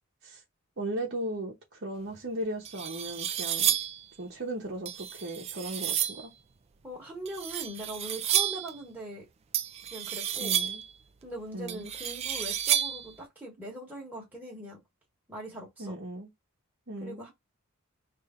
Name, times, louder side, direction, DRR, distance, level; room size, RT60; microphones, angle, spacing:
voice 1, 0.8-3.7 4.2-6.3 10.4-10.8 11.5-11.9 15.8-16.3 16.9-17.2, right 1 dB, 50° right, 0.9 m, -37 dB
sound 1, 2.1-2.2 2.6-4.0 4.9-6.3 7.3-8.7 9.5-10.9 11.7-13.1, right 10 dB, 30° right, 0.3 m, -30 dB
voice 2, 6.8-9.3 9.9-10.6 11.2-14.8 15.3-15.9 17.0-17.3, right 1 dB, 10° right, 1.3 m, -41 dB
3.3 x 2.6 x 3.6 m
head